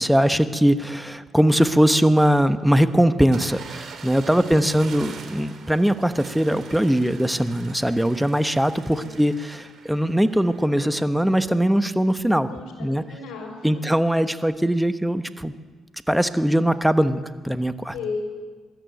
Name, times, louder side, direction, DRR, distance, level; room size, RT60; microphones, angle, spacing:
voice 1, 0.0-12.5 12.8-13.0 13.6-15.5 16.1-17.9, equal, 5° right, 11 dB, 1.1 m, -21 dB
sound 1, 3.3-10.7, right 5 dB, 65° right, 3.0 m, -43 dB
voice 2, 4.2-4.7 8.9-9.2 12.5-13.8 17.9-18.2, left 4 dB, 85° left, 1 dB, 5.2 m, -35 dB
21.0 x 13.5 x 9.2 m, 1.4 s
cardioid pair, 90°, 0 cm